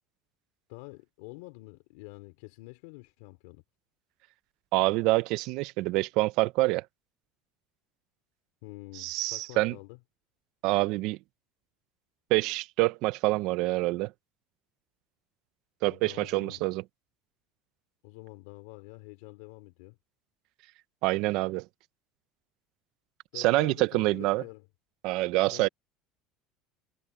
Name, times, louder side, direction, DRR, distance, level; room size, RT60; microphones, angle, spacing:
voice 1, 0.7-3.6 8.6-10.0 15.9-16.6 18.0-20.0 23.3-24.7 25.5-25.7, left 24 dB, 80° left, 3.1 m, -47 dB
voice 2, 4.7-6.8 9.0-9.7 10.6-11.2 12.3-14.1 15.8-16.8 21.0-21.6 23.3-24.4 25.0-25.7, right 20 dB, 65° right, 0.8 m, -26 dB
supercardioid pair, 135°, 0 cm